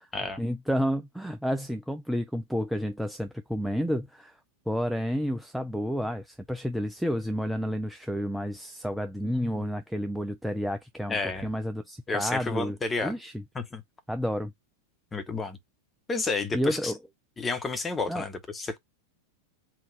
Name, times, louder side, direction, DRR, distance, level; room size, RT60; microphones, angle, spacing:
voice 1, 0.4-4.4 4.7-12.8 13.0-13.4 14.1-14.5 16.5-17.0 18.1-18.2, equal, ahead, 0.5 m, -30 dB
voice 2, 9.2-9.6 11.1-11.5 12.1-13.2 13.5-13.8 15.1-15.6 16.1-16.9 17.4-18.8, left 3 dB, 15° left, 1.1 m, -31 dB
3.8 x 2.4 x 3.9 m
figure-of-eight pair, 90°, 0 cm